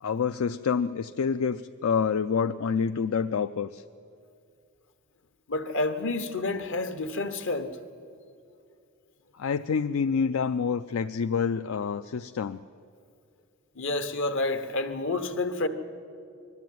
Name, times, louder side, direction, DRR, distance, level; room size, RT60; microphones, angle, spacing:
voice 1, 0.0-3.8 9.3-12.6, left 6 dB, 80° left, 0.4 m, -27 dB
voice 2, 5.5-7.8 13.7-15.7, left 2 dB, 65° left, 1.3 m, -29 dB
21.5 x 13.5 x 9.3 m
head